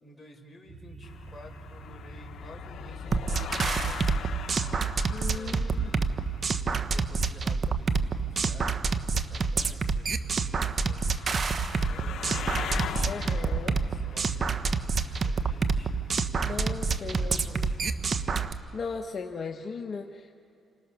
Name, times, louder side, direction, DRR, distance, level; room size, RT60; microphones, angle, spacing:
voice 1, 0.0-4.2 5.2-6.3 6.9-12.5 13.0-14.6 14.9-17.8, left 2 dB, 15° left, 0 dB, 5.0 m, -51 dB
sound 1, 0.6-18.1, right 4 dB, 60° right, 4.3 m, -46 dB
sound 2, 1.0-18.5, left 8 dB, 65° left, 1.1 m, -42 dB
sound 3, 3.1-18.5, right 4 dB, 45° right, 1.1 m, -28 dB
voice 2, 5.1-5.9 13.1-13.8 16.4-17.7 18.7-20.4, left 5 dB, 45° left, 3 dB, 1.3 m, -37 dB
29.0 x 26.5 x 6.5 m, 2.5 s
cardioid pair, 90°, 0 cm